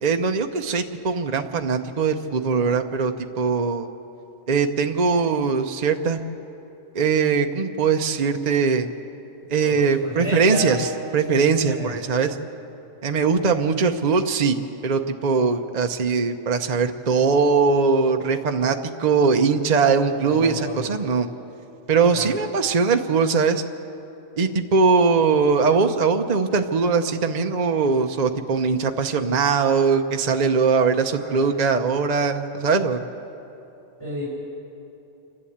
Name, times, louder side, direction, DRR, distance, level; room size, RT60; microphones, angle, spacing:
voice 1, 0.0-3.9 4.5-6.2 6.9-8.9 9.5-12.4 13.0-14.6 14.8-21.3 21.9-23.6 24.4-33.0, right 5 dB, 40° right, 5 dB, 0.8 m, -21 dB
voice 2, 9.6-10.8 11.6-12.0 20.0-20.9 22.1-22.3 31.1-31.4 34.0-34.2, equal, 25° left, -7 dB, 5.2 m, -32 dB
28.5 x 11.5 x 8.6 m, 2.9 s
omnidirectional pair, 1.2 m